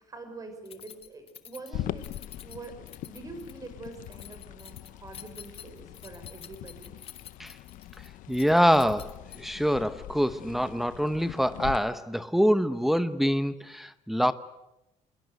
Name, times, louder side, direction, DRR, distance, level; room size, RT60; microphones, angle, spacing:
voice 1, 0.0-7.0, right 3 dB, 25° right, 8 dB, 5.9 m, -45 dB
Keys jangling, 0.7-9.7, left 9 dB, 45° left, 1.4 m, -49 dB
sound 1, 1.7-11.8, left 14 dB, 80° left, 0.8 m, -42 dB
voice 2, 8.3-14.3, equal, ahead, 11 dB, 0.9 m, -25 dB
27.0 x 21.5 x 8.2 m, 0.89 s
cardioid pair, 150°, 13 cm